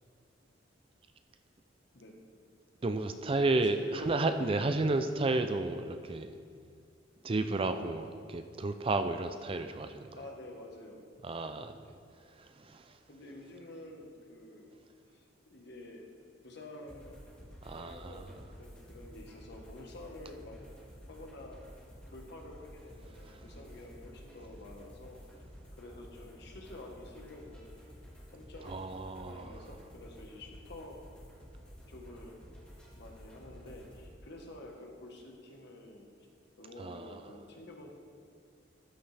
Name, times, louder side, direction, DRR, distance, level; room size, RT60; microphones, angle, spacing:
voice 1, 2.8-6.3 7.2-10.2 11.2-11.8 12.3-13.0 17.6-18.4 23.3-23.4 28.7-29.7 36.8-37.2, right 2 dB, 30° right, 9 dB, 0.4 m, -32 dB
voice 2, 3.6-4.3 4.6-4.9 10.1-11.1 13.1-14.7 15.1-16.0 16.4-17.2 17.6-20.6 21.1-21.6 22.1-25.2 25.8-27.8 28.3-28.9 29.2-31.0 31.9-32.4 33.0-36.1 36.6-37.9, left 1 dB, 60° left, 1 dB, 1.4 m, -49 dB
sound 1, 16.9-34.1, equal, 5° left, 1.8 m, -52 dB
13.0 x 9.7 x 3.4 m, 2.3 s
head